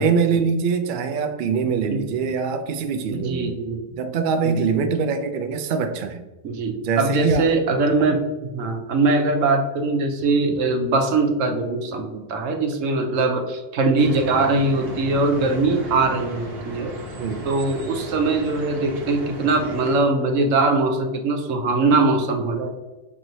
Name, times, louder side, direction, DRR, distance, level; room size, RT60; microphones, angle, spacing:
voice 1, 0.0-3.6 4.0-6.2 6.8-7.5 8.0-8.1 17.2-17.5, right 5 dB, 90° right, 7 dB, 0.4 m, -23 dB
voice 2, 3.1-3.8 4.4-4.8 6.4-16.9 17.4-22.8, right 3 dB, 70° right, 5 dB, 1.0 m, -21 dB
sound 1, 14.0-20.0, equal, 50° right, 1.0 m, -35 dB
5.8 x 3.1 x 2.7 m, 1.1 s
omnidirectional pair, 1.4 m